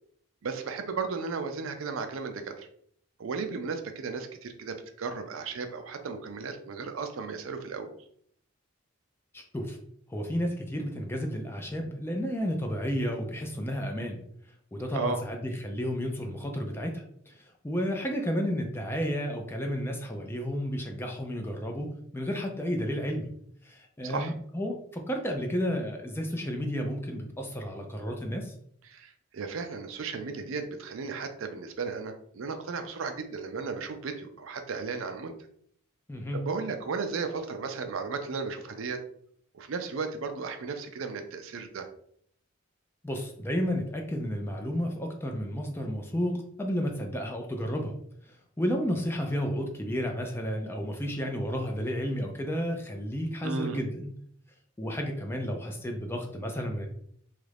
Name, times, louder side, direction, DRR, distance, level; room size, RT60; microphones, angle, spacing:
voice 1, 0.4-2.7 3.2-7.9 14.9-15.2 24.0-24.3 28.9-35.3 36.4-39.0 39.5-41.9 53.4-53.8, right 4 dB, 70° right, 7 dB, 0.4 m, -35 dB
voice 2, 9.3-9.8 10.1-14.2 14.7-23.3 23.6-28.5 36.1-36.4 43.0-47.9 48.2-54.1 54.8-56.9, equal, 10° left, 2 dB, 0.4 m, -32 dB
3.1 x 2.4 x 3.3 m, 0.65 s
head